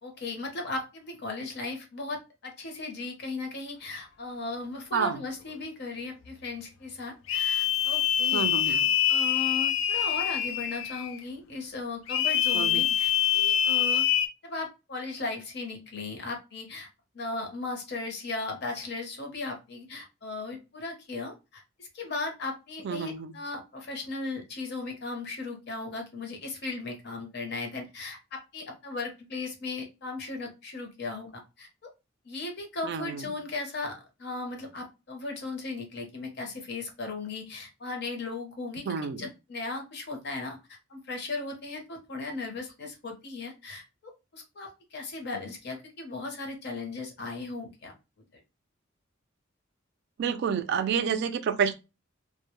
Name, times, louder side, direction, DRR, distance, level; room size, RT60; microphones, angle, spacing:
voice 1, 0.0-8.8 9.1-14.1 14.4-16.9 17.1-31.9 32.2-47.9, left 3 dB, 55° left, 0.7 m, -37 dB
sound 1, 7.3-11.2 12.1-14.3, left 11 dB, 70° left, 0.3 m, -25 dB
voice 2, 8.3-8.8 12.5-12.9 22.8-23.3 32.9-33.2 38.9-39.3 50.2-51.7, right 6 dB, 55° right, 0.3 m, -29 dB
2.1 x 2.0 x 2.9 m
head